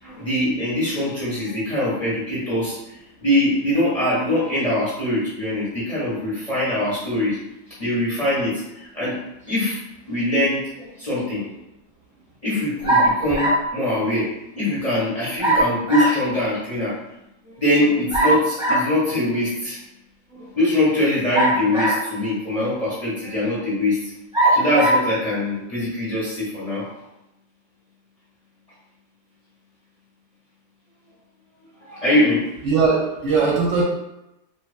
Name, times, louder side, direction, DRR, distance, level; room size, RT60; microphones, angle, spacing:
voice 1, 0.0-7.4 7.8-9.2 9.5-9.8 10.1-11.4 12.4-17.0 17.4-19.8 20.3-24.1 24.5-26.9 31.8-32.5, left 1 dB, 35° left, -10 dB, 0.6 m, -23 dB
sound 1, 12.8-13.7 15.4-16.2 18.1-18.9 21.3-22.2 22.9-23.0 24.3-25.1, right 1 dB, 5° right, 0.8 m, -20 dB
voice 2, 32.6-33.8, right 4 dB, 70° right, -3 dB, 0.8 m, -19 dB
2.7 x 2.2 x 2.3 m, 0.91 s
omnidirectional pair, 1.5 m